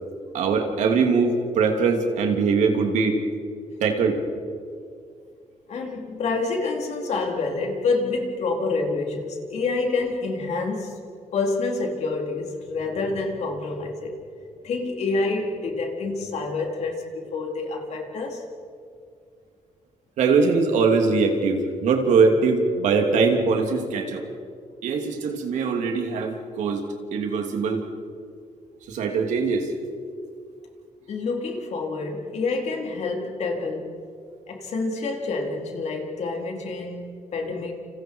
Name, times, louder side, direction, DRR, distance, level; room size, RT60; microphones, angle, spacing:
voice 1, 0.3-3.2 3.8-4.2 20.2-24.3 24.8-27.8 28.9-29.7, right 4 dB, 85° right, 3 dB, 3.1 m, -22 dB
voice 2, 5.7-11.0 11.3-14.1 14.6-18.4 31.1-33.9 34.5-37.7, left 3 dB, 65° left, 1 dB, 4.1 m, -27 dB
29.5 x 28.0 x 4.8 m, 2.3 s
cardioid pair, 90°, 12 cm